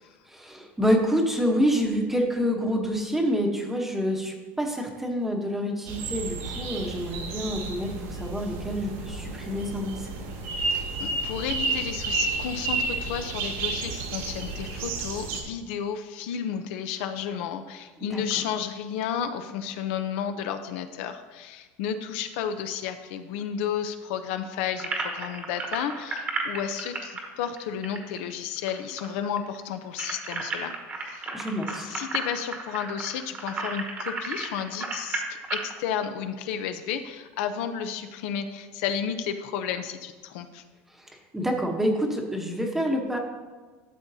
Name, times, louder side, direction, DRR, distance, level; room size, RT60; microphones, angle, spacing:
voice 1, 0.3-10.1 18.0-18.4 31.3-31.9 40.9-43.2, equal, 5° right, 1 dB, 1.0 m, -27 dB
sound 1, 5.9-15.4, right 3 dB, 80° right, 2.3 m, -31 dB
voice 2, 10.6-30.7 31.0-31.3 31.7-35.2 35.5-40.6, left 8 dB, 65° left, 8 dB, 0.6 m, -32 dB
sound 2, 24.8-28.7 29.0-29.1 29.4-35.7, right 3 dB, 20° right, 1.2 m, -33 dB
12.5 x 7.2 x 2.8 m, 1.4 s
supercardioid pair, 160°, 7 cm